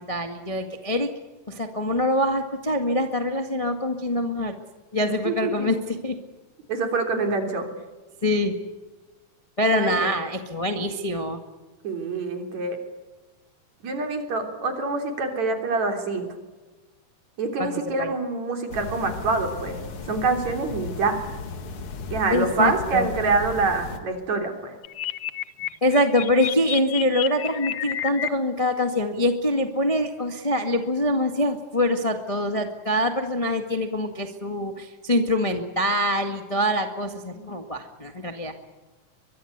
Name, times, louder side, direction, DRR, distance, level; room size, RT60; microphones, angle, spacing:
voice 1, 0.1-1.1 1.5-4.5 4.9-6.2 8.2-8.6 9.6-11.4 17.6-17.7 18.0-18.1 22.3-23.1 25.8-38.5, left 1 dB, 20° left, 5 dB, 0.9 m, -24 dB
voice 2, 5.2-5.7 6.7-7.7 9.7-10.1 11.8-12.8 13.8-16.3 17.4-21.2 22.1-24.7 37.4-37.5, right 3 dB, 55° right, 5 dB, 4.6 m, -26 dB
sound 1, 18.7-24.0, left 4 dB, 45° left, 2.3 m, -36 dB
sound 2, 24.8-28.3, left 11 dB, 70° left, 1.3 m, -30 dB
23.5 x 23.0 x 8.2 m, 1.2 s
omnidirectional pair, 3.9 m